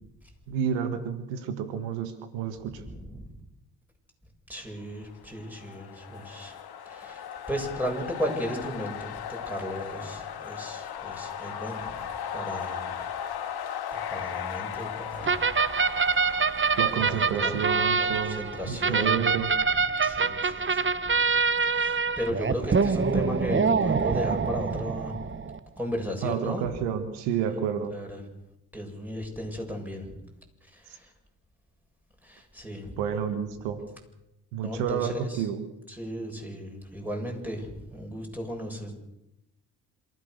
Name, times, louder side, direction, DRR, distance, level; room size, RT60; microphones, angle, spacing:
voice 1, 0.5-2.8 16.8-19.5 26.2-27.9 33.0-33.8 34.5-35.6, right 8 dB, 85° right, 10 dB, 1.7 m, -30 dB
voice 2, 2.6-3.3 4.5-13.1 13.9-15.4 15.9-16.3 17.0-21.1 21.7-25.3 25.7-26.7 27.5-28.2 28.7-30.2 30.6-31.1 32.2-32.9 34.6-35.5 35.9-39.0, equal, 5° right, 1 dB, 7.9 m, -36 dB
sound 1, 5.2-19.0, left 8 dB, 60° left, 2.2 m, -37 dB
sound 2, 15.2-25.6, right 5 dB, 30° right, 1.1 m, -25 dB
27.0 x 14.5 x 6.7 m, 0.88 s
hypercardioid pair, 50°, 42 cm